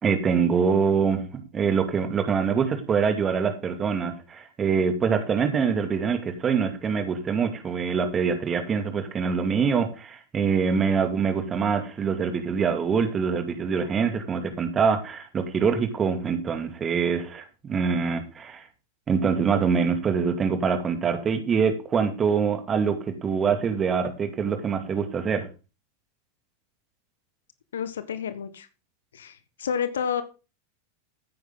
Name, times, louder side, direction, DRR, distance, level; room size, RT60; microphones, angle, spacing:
voice 1, 0.0-18.6 19.1-25.5, right 6 dB, 20° right, 7 dB, 2.4 m, -24 dB
voice 2, 27.7-28.7 29.1-30.2, left 7 dB, 65° left, 12 dB, 1.3 m, -30 dB
14.0 x 9.7 x 3.9 m, 0.32 s
figure-of-eight pair, 90°, 0 cm